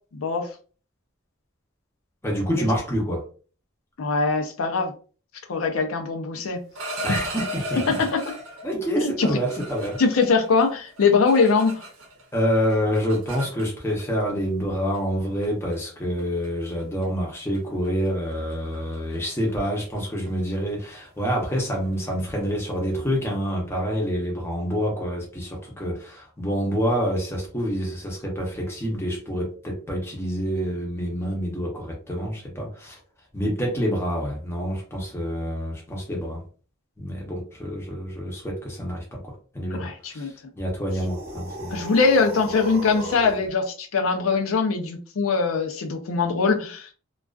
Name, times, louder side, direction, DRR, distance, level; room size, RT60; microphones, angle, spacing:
voice 1, 0.1-0.5 4.0-4.9 5.5-6.6 7.1-7.2 7.9-8.2 9.0-9.3 10.0-11.9 39.8-40.3 41.7-46.9, left 4 dB, 85° left, 0.5 m, -22 dB
voice 2, 2.2-3.2 7.0-8.0 8.6-10.0 12.3-33.0 33.3-36.4 37.0-41.8, equal, 10° left, 0.7 m, -27 dB
sound 1, 6.6-8.7 9.2-12.2 12.5-14.0 14.9-15.1 15.4-15.8 16.2-16.5 16.8-17.0 17.3-17.6 17.8-23.2, right 1 dB, 85° right, 0.7 m, -37 dB
sound 2, 40.9-43.5, right 2 dB, 30° right, 0.8 m, -36 dB
2.3 x 2.3 x 2.3 m
head